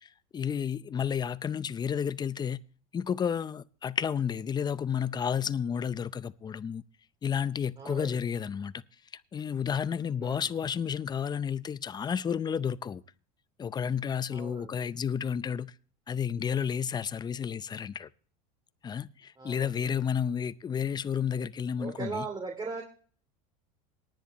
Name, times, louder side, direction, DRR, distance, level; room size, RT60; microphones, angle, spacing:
voice 1, 0.0-2.6 2.9-6.8 7.2-8.7 9.3-13.0 13.6-15.7 16.1-18.1 18.8-22.2, left 7 dB, 20° left, 0.6 m, -31 dB
voice 2, 7.8-8.2 10.2-10.5 14.3-14.7 19.4-19.8 21.8-22.8, right 4 dB, 20° right, 2.7 m, -38 dB
19.0 x 9.9 x 3.1 m
supercardioid pair, 110°, 19 cm